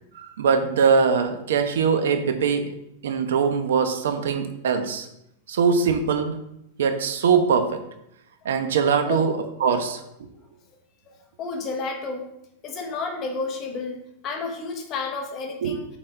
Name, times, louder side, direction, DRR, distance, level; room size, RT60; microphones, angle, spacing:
voice 1, 0.1-2.8 3.0-5.1 5.5-6.4 6.8-7.8 8.4-9.3 9.6-10.0 15.6-15.8, right 6 dB, 85° right, 8 dB, 0.9 m, -22 dB
voice 2, 11.1-12.3 12.6-15.9, left 4 dB, 30° left, 3 dB, 1.1 m, -31 dB
7.5 x 4.2 x 4.5 m, 0.82 s
supercardioid pair, 160°, 0 cm